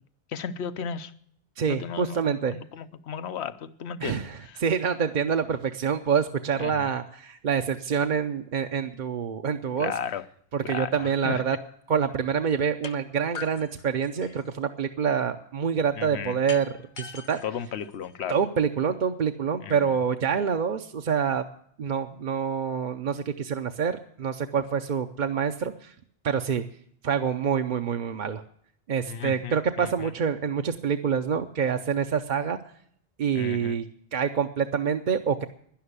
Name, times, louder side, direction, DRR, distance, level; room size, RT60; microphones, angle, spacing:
voice 1, 0.3-1.1 1.7-4.6 6.6-6.9 9.8-10.3 10.6-11.4 15.9-16.4 17.4-18.4 19.6-19.9 29.1-30.1 33.3-33.8, left 7 dB, 90° left, 1.0 m, -35 dB
voice 2, 1.6-2.6 4.0-9.9 10.5-11.6 11.9-16.7 17.0-17.4 18.3-21.4 21.8-25.9 26.2-26.6 27.0-28.4 28.9-32.6 33.2-33.9 34.1-35.5, right 7 dB, 50° right, 0.7 m, -26 dB
Bouncing bulb crash, 12.8-13.0 13.3-14.5 16.5-18.5, left 6 dB, 50° left, 0.8 m, -42 dB
11.5 x 10.5 x 8.1 m
omnidirectional pair, 1.1 m